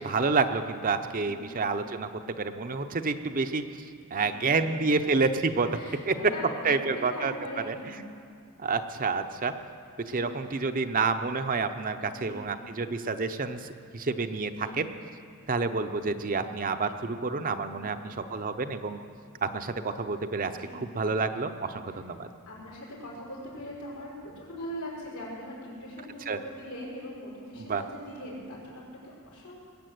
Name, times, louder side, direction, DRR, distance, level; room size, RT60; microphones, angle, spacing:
voice 1, 0.0-3.6 4.1-5.8 6.1-6.2 6.6-7.3 7.6-7.8 8.6-9.5 10.0-14.9 15.5-19.0 19.4-22.3 26.3-26.4 27.6-27.8, right 4 dB, 40° right, 8 dB, 0.7 m, -29 dB
voice 2, 1.1-1.5 4.1-4.7 5.5-8.0 10.0-10.4 12.0-12.5 14.5-14.8 17.7-18.1 20.5-20.8 21.9-22.0 22.5-29.6, equal, 90° left, -5 dB, 5.6 m, -42 dB
21.0 x 8.4 x 7.8 m, 2.3 s
head